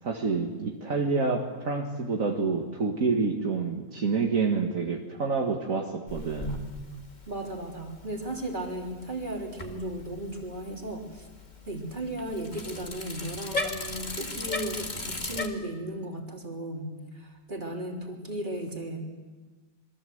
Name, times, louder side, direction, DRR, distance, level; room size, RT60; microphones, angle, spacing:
voice 1, 0.0-6.6, right 4 dB, 60° right, 1 dB, 2.0 m, -28 dB
Bicycle, 6.1-15.5, left 2 dB, 30° left, 2.1 m, -38 dB
voice 2, 7.3-11.3 11.6-19.0, right 1 dB, 30° right, 1 dB, 3.5 m, -35 dB
27.0 x 22.0 x 7.9 m, 1.3 s
omnidirectional pair, 1.6 m